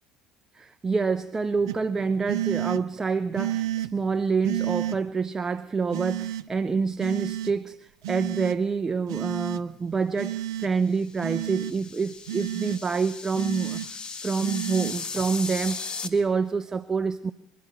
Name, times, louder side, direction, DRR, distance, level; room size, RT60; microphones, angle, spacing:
voice 1, 0.5-17.3, right 5 dB, 20° right, 0.8 m, -27 dB
sound 1, 1.7-1.8 2.3-2.8 3.4-3.9 4.4-5.0 5.9-6.4 7.0-7.5 8.0-8.6 9.1-9.6 10.2-10.7 11.2-11.7 12.3-12.8 13.3-13.9 14.4-14.9, right 13 dB, 75° right, 0.8 m, -30 dB
sound 2, 10.9-16.1, left 4 dB, 35° left, 1.7 m, -37 dB
25.0 x 11.5 x 9.1 m
figure-of-eight pair, 65°, 3 cm